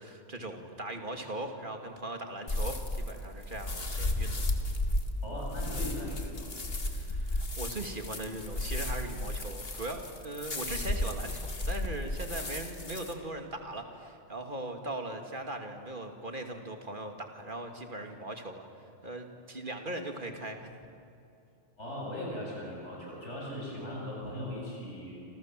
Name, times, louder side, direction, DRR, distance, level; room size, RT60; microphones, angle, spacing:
voice 1, 0.0-4.5 6.9-18.7 19.0-20.7, right 1 dB, 45° right, 4 dB, 2.7 m, -39 dB
sound 1, 2.5-13.1, left 1 dB, 60° left, 2.3 m, -34 dB
voice 2, 5.2-6.5 21.8-25.2, left 1 dB, 85° left, -4 dB, 8.4 m, -39 dB
28.0 x 27.5 x 7.7 m, 2.7 s
omnidirectional pair, 1.2 m